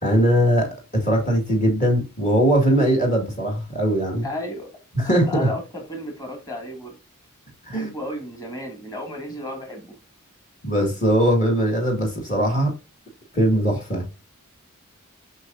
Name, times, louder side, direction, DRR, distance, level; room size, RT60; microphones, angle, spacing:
voice 1, 0.0-4.3 5.0-5.5 7.7-7.9 10.6-12.7 13.3-14.1, equal, 35° left, 2.0 m, -20 dB
voice 2, 4.2-4.7 5.0-7.0 7.7-10.0, left 1 dB, 20° left, 2.2 m, -33 dB
8.0 x 5.7 x 2.6 m
head